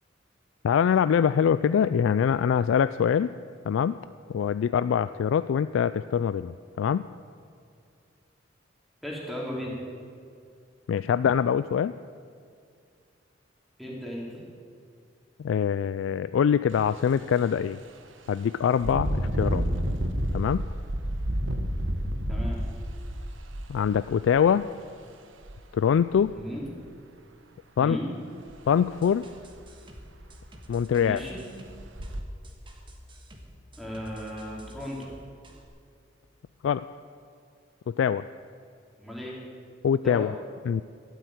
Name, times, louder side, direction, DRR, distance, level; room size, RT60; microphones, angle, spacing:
voice 1, 0.6-3.3 3.7-4.0 4.3-7.1 10.9-11.9 15.4-17.8 18.3-19.7 20.3-20.7 23.7-24.7 25.7-26.3 27.8-28.0 28.7-29.3 30.7-31.2 36.6-36.8 37.9-38.2 39.8-40.3 40.7-40.8, left 7 dB, 80° left, 14 dB, 0.3 m, -24 dB
voice 2, 9.0-9.8 13.8-14.3 22.3-22.6 26.3-26.6 27.8-28.1 31.0-31.4 33.8-35.1 39.0-39.4 40.0-40.3, equal, ahead, -4 dB, 3.3 m, -35 dB
Engine, 16.7-16.9 17.4-17.5 18.8-24.5 25.4-25.5 26.0-26.7 28.5-28.6 29.0-29.1 29.6-29.7 30.0-30.5 31.0-31.2 31.8-32.2, equal, 85° right, 1.2 m, -30 dB
sound 1, 28.8-35.7, equal, 25° right, 1.5 m, -50 dB
13.5 x 8.2 x 9.2 m, 2.3 s
head